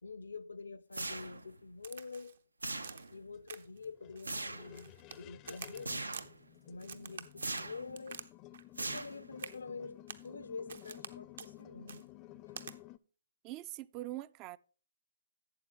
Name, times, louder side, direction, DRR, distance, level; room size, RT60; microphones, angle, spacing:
voice 1, 0.0-2.4 3.1-6.1 6.7-8.2 8.8-12.1 12.5-12.6, left 4 dB, 80° left, 0.6 m, -47 dB
sound 1, 0.9-1.6 2.6-3.3 4.2-4.7 5.9-6.4 7.4-7.9 8.8-9.4, right 2 dB, 90° right, 0.6 m, -40 dB
Crack, 1.8-2.4 2.8-3.1 3.5-3.8 4.2-5.2 5.5-6.3 6.8-8.3 8.5-9.1 9.4-9.6 10.1-10.3 10.7-11.1 11.4-11.5 11.9-12.0 12.6-12.7, right 6 dB, 65° right, 0.9 m, -48 dB
sound 2, 3.3-13.0, left 16 dB, 30° left, 0.5 m, -54 dB
voice 2, 13.4-14.6, right 16 dB, 30° right, 0.3 m, -43 dB
12.0 x 8.0 x 3.0 m
figure-of-eight pair, 130°, 0 cm